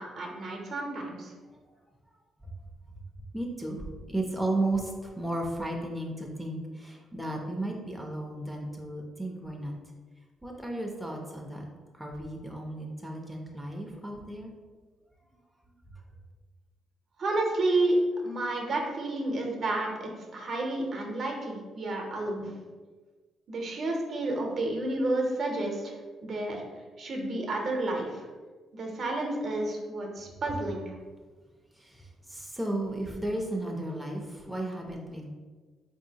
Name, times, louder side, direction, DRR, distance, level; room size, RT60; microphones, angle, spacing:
voice 1, 0.0-1.3 17.2-18.0 18.2-22.5 23.5-26.0 26.2-26.6 27.0-28.3 28.7-31.0, right 2 dB, 55° right, 0 dB, 0.7 m, -31 dB
voice 2, 3.3-9.8 10.4-11.6 11.9-14.5 15.9-16.0 31.7-35.3, right 1 dB, 5° right, -1 dB, 0.5 m, -34 dB
3.7 x 2.7 x 2.8 m, 1.4 s
cardioid pair, 90°, 0 cm